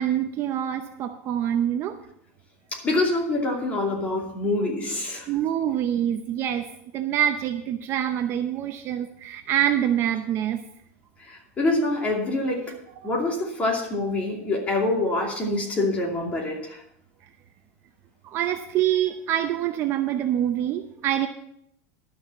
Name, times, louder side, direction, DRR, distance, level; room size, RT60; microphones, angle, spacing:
voice 1, 0.0-2.0 5.3-6.7 6.9-10.6 18.2-21.3, right 10 dB, 35° right, 6 dB, 0.7 m, -25 dB
voice 2, 2.7-5.3 11.3-12.8 13.0-16.8, left 2 dB, 20° left, -1 dB, 2.7 m, -25 dB
12.0 x 6.4 x 7.1 m, 0.73 s
supercardioid pair, 165°, 8 cm